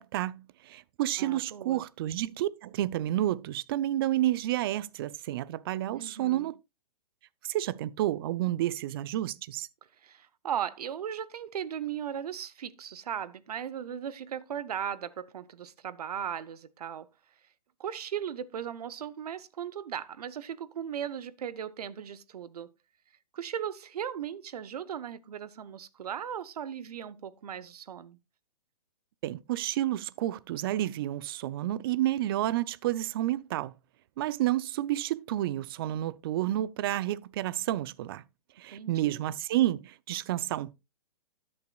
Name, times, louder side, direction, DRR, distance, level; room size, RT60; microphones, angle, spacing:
voice 1, 0.0-6.6 7.4-9.7 29.2-33.7 34.2-38.2 38.6-40.7, right 14 dB, 35° right, 0.4 m, -30 dB
voice 2, 1.2-1.8 5.9-6.5 10.0-17.1 17.8-22.7 23.3-28.2 38.7-39.2, right 9 dB, 70° right, 0.8 m, -37 dB
13.0 x 8.6 x 2.3 m
hypercardioid pair, 145°, 20 cm